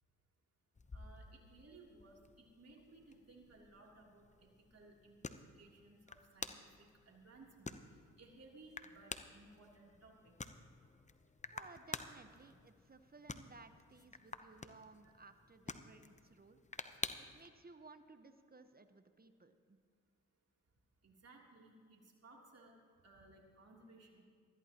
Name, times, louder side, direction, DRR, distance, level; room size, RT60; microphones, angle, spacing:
sound 1, 0.8-17.5, left 3 dB, 20° left, 0.8 m, -51 dB
voice 1, 0.9-10.3 15.0-15.1 21.0-22.7 23.0-24.3, right 2 dB, 45° right, -1 dB, 3.3 m, -61 dB
voice 2, 11.5-16.6 17.2-19.8, right 3 dB, 25° right, 9 dB, 1.2 m, -59 dB
20.0 x 13.5 x 3.0 m, 2.1 s
supercardioid pair, 45°, 34 cm